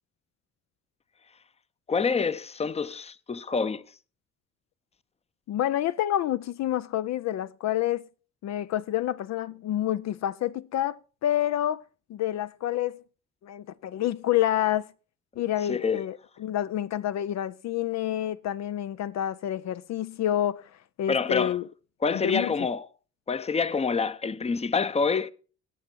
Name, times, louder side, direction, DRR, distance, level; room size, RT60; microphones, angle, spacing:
voice 1, 1.9-3.8 15.7-16.0 21.1-21.6 22.0-22.9 23.3-25.3, left 5 dB, 20° left, 0.6 m, -27 dB
voice 2, 5.5-8.0 8.4-11.8 12.1-13.0 13.4-14.9 15.4-20.7 21.0-21.6 22.1-22.5, left 12 dB, 60° left, 0.5 m, -28 dB
18.0 x 6.9 x 4.5 m
cardioid pair, 90°, 30 cm